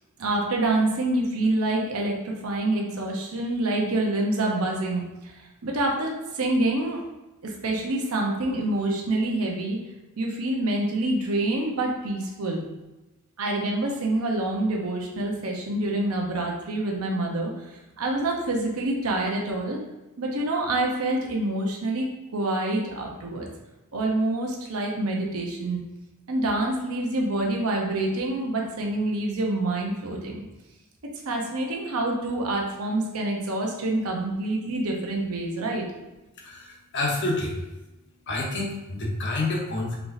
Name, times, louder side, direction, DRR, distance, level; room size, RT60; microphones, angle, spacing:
voice 1, 0.2-7.0 7.4-9.8 10.2-12.6 13.4-17.5 18.0-19.8 20.2-23.5 23.9-25.8 26.3-30.5 31.2-35.8, right 2 dB, 75° right, 0 dB, 0.8 m, -26 dB
voice 2, 36.4-37.5 38.3-39.9, left 2 dB, 55° left, -1 dB, 1.0 m, -28 dB
4.6 x 4.0 x 2.5 m, 1.0 s
head